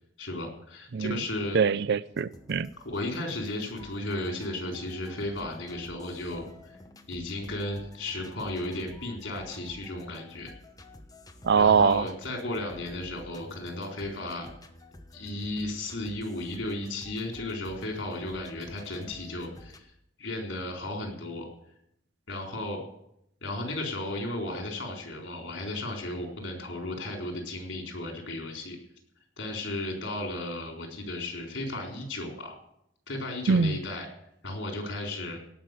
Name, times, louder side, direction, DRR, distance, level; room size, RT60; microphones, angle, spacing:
voice 1, 0.2-1.6 2.8-6.8 7.1-10.5 11.6-14.5 15.1-19.9 20.2-21.4 22.3-22.8 23.4-28.8 29.4-32.6 33.1-34.1 34.4-35.4, left 2 dB, 70° left, 2 dB, 4.0 m, -34 dB
voice 2, 1.5-2.7 11.4-12.1 33.5-33.8, right 5 dB, 60° right, 18 dB, 0.5 m, -23 dB
sound 1, 2.1-19.8, left 1 dB, 20° left, 1.0 m, -51 dB
17.5 x 6.0 x 9.1 m, 0.78 s
head